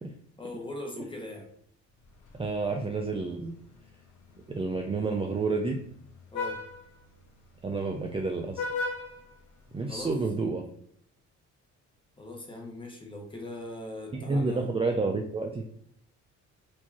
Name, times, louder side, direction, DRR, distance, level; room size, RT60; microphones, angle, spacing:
voice 1, 0.4-1.5 6.3-6.6 9.9-10.2 12.2-14.7, left 1 dB, 15° left, 1 dB, 1.2 m, -40 dB
Vehicle horn car horn honking, 2.0-10.2, left 3 dB, 75° left, 1.1 m, -41 dB
voice 2, 2.4-3.6 4.5-5.8 7.6-8.6 9.7-10.6 14.1-15.6, right 3 dB, 20° right, 2 dB, 0.5 m, -29 dB
4.5 x 2.9 x 2.9 m, 0.65 s
cardioid pair, 90°, 30 cm